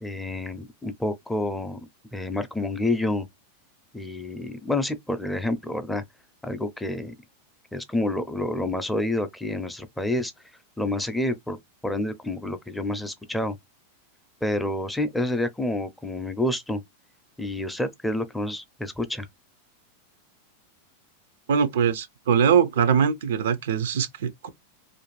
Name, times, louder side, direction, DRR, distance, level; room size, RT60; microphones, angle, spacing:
voice 1, 0.0-1.8 2.1-3.3 3.9-6.0 6.4-7.1 7.7-10.3 10.8-11.6 11.8-13.6 14.4-16.8 17.4-19.3, left 1 dB, 5° left, 0.5 m, -28 dB
voice 2, 21.5-24.5, right 7 dB, 75° right, 0.5 m, -22 dB
2.5 x 2.2 x 3.1 m
hypercardioid pair, 115°, 0 cm